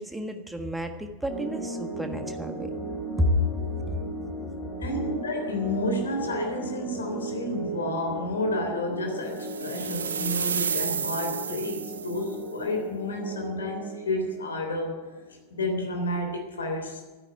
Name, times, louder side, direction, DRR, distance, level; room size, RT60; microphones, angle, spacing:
voice 1, 0.0-2.7 3.2-3.3, equal, 5° right, 6 dB, 1.5 m, -30 dB
sound 1, 1.3-15.6, right 2 dB, 25° left, 3.1 m, -37 dB
voice 2, 4.8-15.0 15.5-17.0, left 1 dB, 70° left, 3 dB, 3.4 m, -30 dB
sound 2, 9.4-12.4, right 7 dB, 70° right, 0.8 m, -31 dB
13.0 x 9.9 x 9.0 m, 1.2 s
figure-of-eight pair, 90°, 0 cm